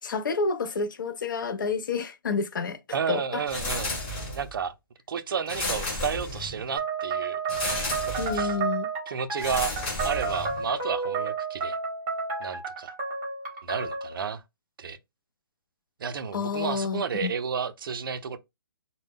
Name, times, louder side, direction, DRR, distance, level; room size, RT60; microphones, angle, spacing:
voice 1, 0.0-2.8 3.1-3.4 8.2-8.9 16.3-17.3, left 5 dB, 60° left, 0.5 m, -29 dB
voice 2, 2.9-4.0 4.3-4.7 5.1-8.6 9.1-9.7 10.0-11.8 12.4-12.9 13.6-14.4 14.8-15.0 16.0-18.4, right 6 dB, 70° right, 0.4 m, -32 dB
sound 1, 3.5-4.6 5.5-6.7 7.5-8.5 9.4-10.7, left 2 dB, 25° left, 0.9 m, -32 dB
sound 2, 6.8-14.2, right 5 dB, 15° right, 0.7 m, -31 dB
2.1 x 2.0 x 3.4 m
hypercardioid pair, 170°, 12 cm